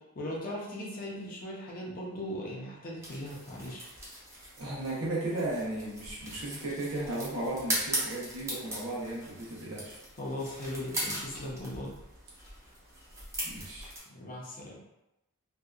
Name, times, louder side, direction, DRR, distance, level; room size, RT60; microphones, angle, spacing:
voice 1, 0.1-3.9 10.2-12.0 14.1-14.8, left 1 dB, 40° left, -3 dB, 0.6 m, -38 dB
sound 1, 3.0-14.0, right 1 dB, 15° right, 0.5 m, -39 dB
voice 2, 4.6-10.0 13.4-13.9, right 2 dB, 70° right, -5 dB, 0.9 m, -35 dB
2.7 x 2.2 x 2.3 m, 0.91 s
head